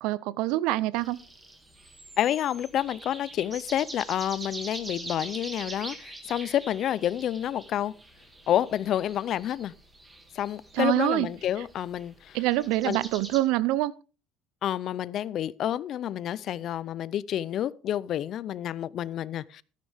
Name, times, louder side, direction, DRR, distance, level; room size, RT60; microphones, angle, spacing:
voice 1, 0.0-1.2 10.7-11.3 12.3-13.9, right 16 dB, 65° right, 0.6 m, -25 dB
sound 1, 0.9-13.4, right 2 dB, 10° right, 1.5 m, -44 dB
voice 2, 2.2-7.9 8.5-9.7 10.3-12.4 12.8-13.0 14.6-19.6, left 11 dB, 40° left, 0.4 m, -29 dB
13.5 x 10.5 x 3.5 m
cardioid pair, 170°, 0 cm